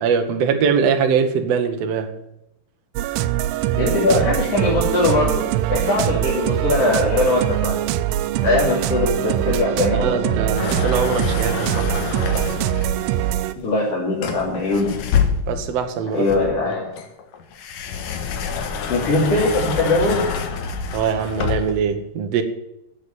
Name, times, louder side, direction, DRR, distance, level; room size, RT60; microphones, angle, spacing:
voice 1, 0.0-2.1 9.9-11.9 15.5-16.2 20.9-22.4, right 6 dB, 70° right, 1.5 m, -22 dB
sound 1, 3.0-13.5, right 12 dB, 90° right, 2.7 m, -23 dB
voice 2, 3.8-7.8 8.4-10.3 13.6-14.9 16.1-16.9 18.9-20.2, left 2 dB, 40° left, 3.7 m, -21 dB
sound 2, 10.6-13.1 14.2-15.7 16.3-21.9, left 7 dB, 65° left, 2.5 m, -26 dB
10.0 x 8.2 x 9.3 m
omnidirectional pair, 4.6 m